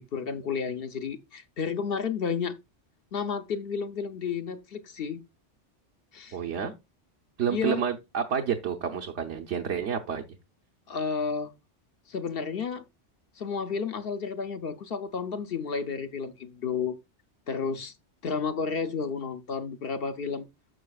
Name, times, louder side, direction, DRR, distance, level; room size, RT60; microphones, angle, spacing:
voice 1, 0.0-2.6 3.1-5.2 6.1-6.4 7.5-7.8 10.9-11.5 12.1-12.8 13.4-17.0 17.5-17.9 18.2-20.5, left 6 dB, 60° left, 0.9 m, -31 dB
voice 2, 6.3-6.7 7.4-10.2, right 7 dB, 70° right, 1.1 m, -29 dB
11.0 x 7.3 x 2.3 m
omnidirectional pair, 1.2 m